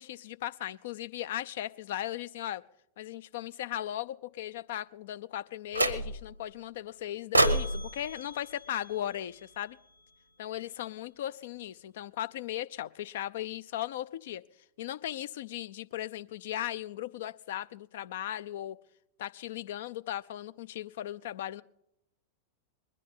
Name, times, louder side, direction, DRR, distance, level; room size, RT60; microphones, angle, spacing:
voice 1, 0.0-2.6 3.0-9.8 10.4-14.4 14.8-18.8 19.2-21.6, left 12 dB, 55° left, 15 dB, 0.5 m, -37 dB
sound 1, 5.7-6.4 7.3-9.6, right 2 dB, 85° right, 0.9 m, -30 dB
21.0 x 10.5 x 5.4 m, 0.81 s
figure-of-eight pair, 90°, 0 cm